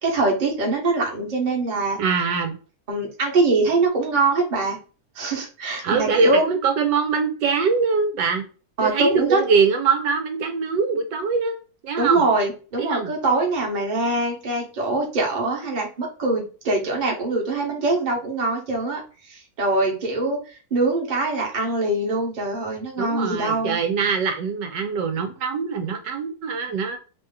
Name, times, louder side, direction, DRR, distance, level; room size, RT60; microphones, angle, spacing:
voice 1, 0.0-2.0 2.9-4.8 5.1-6.5 8.8-9.4 12.0-19.0 19.3-20.4 20.7-23.8, right 3 dB, 30° right, 0 dB, 1.0 m, -23 dB
voice 2, 2.0-2.6 5.8-8.4 8.8-11.6 11.8-12.2 12.8-13.1 23.0-27.0, right 5 dB, 75° right, 5 dB, 1.3 m, -23 dB
3.1 x 2.8 x 3.5 m, 0.36 s
omnidirectional pair, 2.0 m